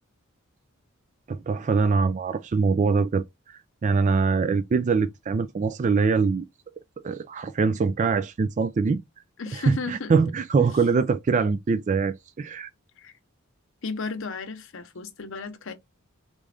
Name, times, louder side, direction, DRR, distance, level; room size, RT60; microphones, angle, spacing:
voice 1, 1.3-6.5 7.0-9.0 9.5-12.7, right 4 dB, 35° right, 0.3 m, -23 dB
voice 2, 9.4-10.2 10.6-10.7 13.0-13.1 13.8-15.7, left 4 dB, 65° left, 0.8 m, -34 dB
3.7 x 2.4 x 3.3 m
head